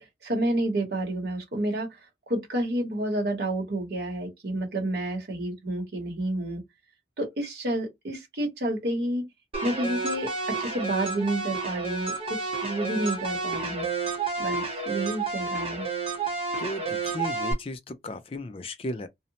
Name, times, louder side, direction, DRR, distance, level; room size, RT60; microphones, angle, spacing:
voice 1, 0.0-2.0 2.3-6.6 7.2-9.2 9.6-13.9 14.4-15.9, right 1 dB, 70° right, 0.9 m, -30 dB
sound 1, 9.5-17.5, right 4 dB, 30° right, 0.7 m, -30 dB
voice 2, 16.6-19.1, left 1 dB, 30° left, 0.4 m, -35 dB
2.7 x 2.0 x 2.7 m
head